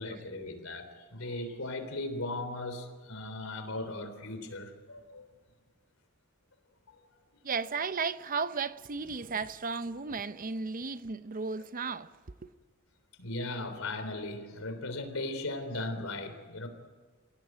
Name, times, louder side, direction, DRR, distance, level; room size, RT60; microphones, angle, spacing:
voice 1, 0.0-5.3 6.9-7.0 13.2-16.7, left 2 dB, 80° left, 3.6 m, -37 dB
voice 2, 7.4-12.1, right 5 dB, 40° right, 0.7 m, -34 dB
27.0 x 17.0 x 9.3 m
head